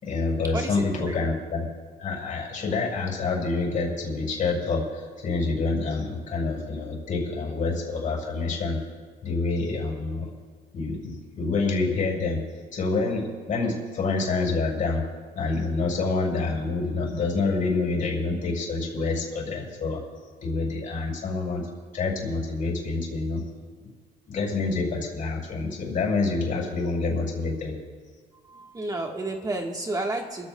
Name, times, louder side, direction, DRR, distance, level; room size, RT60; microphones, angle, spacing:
voice 1, 0.0-1.7 2.0-8.8 9.2-10.3 10.7-12.4 12.7-15.0 15.3-20.0 20.4-21.6 21.9-23.4 24.3-27.8, left 3 dB, 50° left, -1 dB, 5.0 m, -27 dB
voice 2, 0.5-1.2 28.4-30.5, right 2 dB, 20° right, 2 dB, 1.3 m, -31 dB
28.5 x 15.0 x 2.2 m, 1.5 s
cardioid pair, 110°, 17 cm